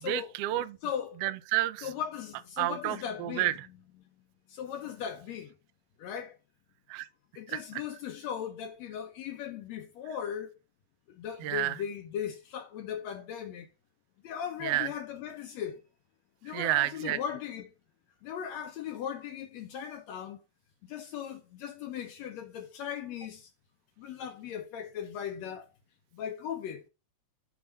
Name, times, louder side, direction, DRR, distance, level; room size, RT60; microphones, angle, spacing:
voice 1, 0.1-0.8 1.2-1.9 2.6-3.5 6.9-7.1 7.5-7.6 11.4-11.8 14.6-14.9 16.5-17.2, right 16 dB, 80° right, 1.4 m, -30 dB
voice 2, 0.8-1.2 1.8-3.5 4.5-5.5 6.0-6.3 7.4-10.5 11.1-13.7 14.2-15.8 16.4-17.7 18.2-20.4 20.9-23.5 24.0-25.7 26.1-26.8, left 8 dB, 75° left, 1.9 m, -38 dB
7.0 x 3.6 x 5.1 m
omnidirectional pair, 3.3 m